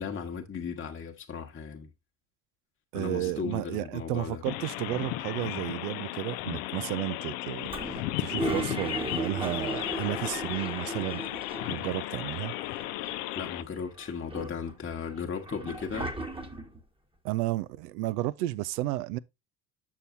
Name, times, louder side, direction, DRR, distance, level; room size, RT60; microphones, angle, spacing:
voice 1, 0.0-1.9 2.9-4.4 13.3-16.1, left 6 dB, 25° left, 1.2 m, -36 dB
voice 2, 2.9-11.2 11.7-12.5 17.2-19.2, right 17 dB, 65° right, 0.6 m, -32 dB
sound 1, 4.4-13.6, left 16 dB, 60° left, 0.7 m, -35 dB
Toilet flush, 7.7-12.0 12.3-12.4 12.6-13.5 14.0-16.8, right 2 dB, 10° right, 1.3 m, -36 dB
7.5 x 6.7 x 2.7 m
hypercardioid pair, 60°, 50 cm